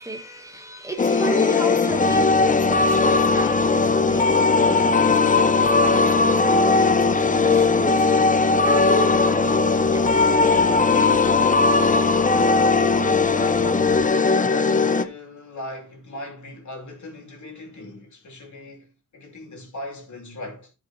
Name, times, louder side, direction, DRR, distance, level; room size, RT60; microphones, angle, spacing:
voice 1, 0.0-5.5 5.8-12.0, right 1 dB, 10° right, 1.2 m, -34 dB
sound 1, 1.0-15.0, left 4 dB, 25° left, 0.6 m, -18 dB
sound 2, 1.9-14.1, right 6 dB, 25° right, 0.5 m, -36 dB
voice 2, 12.9-18.9 19.1-20.7, left 2 dB, 65° left, 2.9 m, -37 dB
13.5 x 5.2 x 2.9 m
wide cardioid pair, 100°, 32 cm